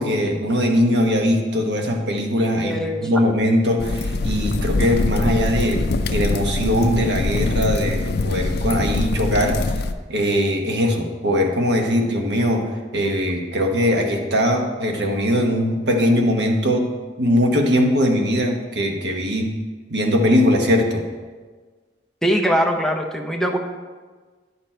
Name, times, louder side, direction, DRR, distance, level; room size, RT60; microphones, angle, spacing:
voice 1, 0.0-9.7 10.1-16.9 17.2-19.6 19.9-21.0, equal, 65° right, 2 dB, 1.2 m, -20 dB
voice 2, 2.6-3.1 22.2-23.6, equal, 5° left, 2 dB, 0.7 m, -21 dB
sound 1, 3.8-9.9, left 3 dB, 65° left, 0.5 m, -23 dB
10.5 x 6.9 x 4.4 m, 1.4 s
head